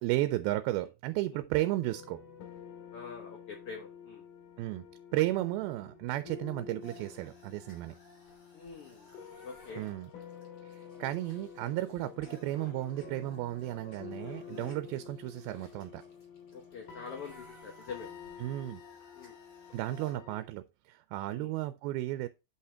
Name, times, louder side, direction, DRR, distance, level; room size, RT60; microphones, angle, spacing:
voice 1, 0.0-2.2 4.6-4.9 5.1-8.0 9.8-10.1 10.7-16.0 18.4-18.8 19.7-22.3, right 16 dB, 85° right, 2.4 m, -34 dB
sound 1, 1.8-20.4, left 7 dB, 90° left, 3.9 m, -50 dB
voice 2, 2.9-4.2 8.5-9.1 9.4-9.9 14.5-14.9 16.5-18.1 19.1-19.4 21.3-21.6, left 5 dB, 60° left, 1.6 m, -45 dB
sound 2, 6.8-20.1, left 2 dB, 40° left, 3.1 m, -56 dB
8.2 x 5.7 x 3.4 m
omnidirectional pair, 4.3 m